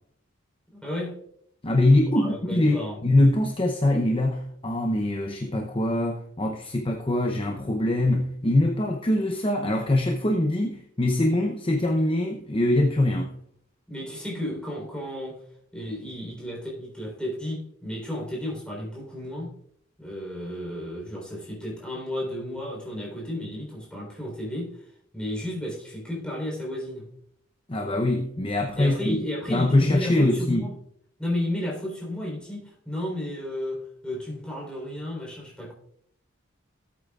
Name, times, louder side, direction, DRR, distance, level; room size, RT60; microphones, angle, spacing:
voice 1, 0.7-1.2 2.2-3.0 10.2-10.3 13.9-15.5 15.7-19.5 20.0-27.1 28.8-30.7 31.2-35.7, left 1 dB, 5° left, 3.9 m, -33 dB
voice 2, 1.6-13.3 27.7-29.2 29.5-30.7, left 1 dB, 25° left, 0.7 m, -23 dB
18.0 x 8.5 x 2.4 m
head